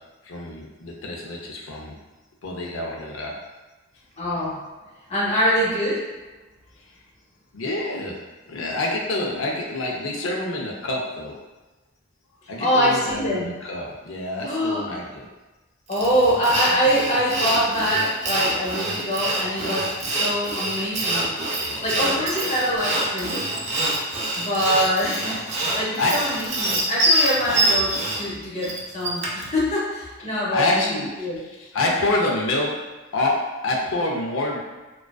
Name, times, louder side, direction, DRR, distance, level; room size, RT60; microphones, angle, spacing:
voice 1, 0.2-1.9 2.4-3.3 7.5-8.2 8.5-11.4 12.5-15.3 21.6-22.2 26.0-26.1 30.5-32.7 33.1-33.4 33.6-34.6, left 2 dB, 90° left, -1 dB, 0.5 m, -27 dB
voice 2, 4.2-4.6 5.1-6.0 12.6-13.5 14.4-14.9 15.9-21.3 21.8-23.4 24.4-25.4 25.7-31.4, equal, 35° left, -6 dB, 0.7 m, -24 dB
Sawing, 15.9-29.5, right 1 dB, 35° right, 0.4 m, -25 dB
2.4 x 2.3 x 2.2 m, 1.2 s
head